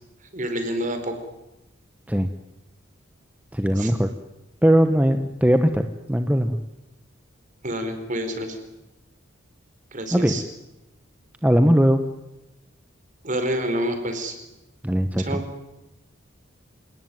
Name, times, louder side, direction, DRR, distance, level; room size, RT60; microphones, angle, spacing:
voice 1, 0.3-1.1 3.8-3.9 7.6-8.6 9.9-10.4 13.2-14.3 15.2-15.4, right 1 dB, 40° right, 7 dB, 4.5 m, -27 dB
voice 2, 3.5-4.1 4.6-6.6 10.1-10.3 11.4-12.0 14.8-15.4, equal, 10° right, 7 dB, 1.0 m, -19 dB
28.0 x 19.0 x 9.4 m, 0.95 s
head